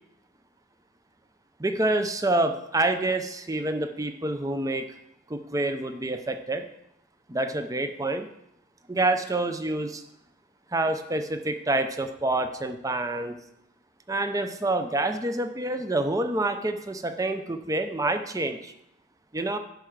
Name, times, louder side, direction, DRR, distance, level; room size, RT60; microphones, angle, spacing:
voice 1, 1.6-4.9 5.3-6.7 7.3-8.3 8.9-10.0 10.7-13.3 14.1-18.7 19.3-19.6, right 2 dB, 15° right, 8 dB, 0.6 m, -27 dB
10.5 x 4.7 x 6.4 m, 0.82 s
head